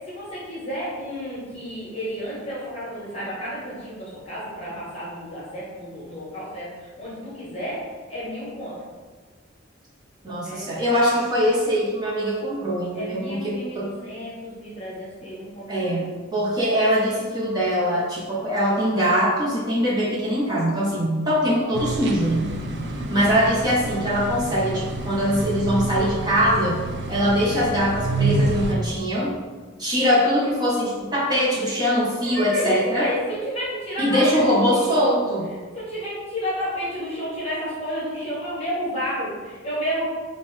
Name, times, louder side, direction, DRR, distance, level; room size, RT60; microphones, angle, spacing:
voice 1, 0.0-7.8 8.1-8.8 10.4-10.7 12.9-16.0 22.5-23.2 32.2-35.2 35.7-40.1, equal, 30° left, -7 dB, 1.3 m, -31 dB
voice 2, 10.2-13.9 15.7-22.5 23.1-26.8 27.1-29.3 29.8-33.1 34.0-35.5, equal, 20° right, -7 dB, 1.2 m, -22 dB
sound 1, 21.7-28.7, right 2 dB, 55° right, 0.5 m, -28 dB
5.9 x 2.5 x 3.4 m, 1.4 s
head